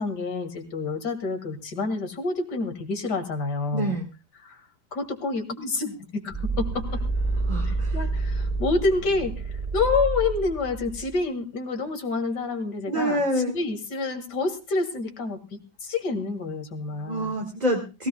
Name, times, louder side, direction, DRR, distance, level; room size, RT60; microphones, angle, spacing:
voice 1, 0.0-4.0 4.4-4.6 4.9-7.0 7.6-13.2 13.5-17.4, left 3 dB, 75° left, 7 dB, 2.4 m, -28 dB
voice 2, 3.7-4.1 7.5-8.0 12.9-13.6 16.9-18.1, equal, 25° right, 2 dB, 1.6 m, -27 dB
sound 1, 6.3-11.2, right 3 dB, 10° right, 3.0 m, -28 dB
21.5 x 16.0 x 2.2 m, 0.30 s
omnidirectional pair, 1.8 m